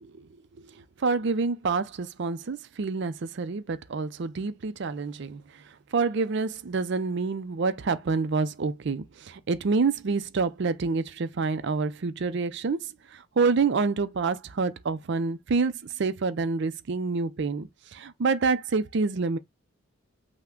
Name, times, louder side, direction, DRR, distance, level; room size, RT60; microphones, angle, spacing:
voice 1, 1.0-5.4 5.9-12.8 13.1-19.4, right 4 dB, 55° right, 0.5 m, -27 dB
5.7 x 2.2 x 3.6 m
head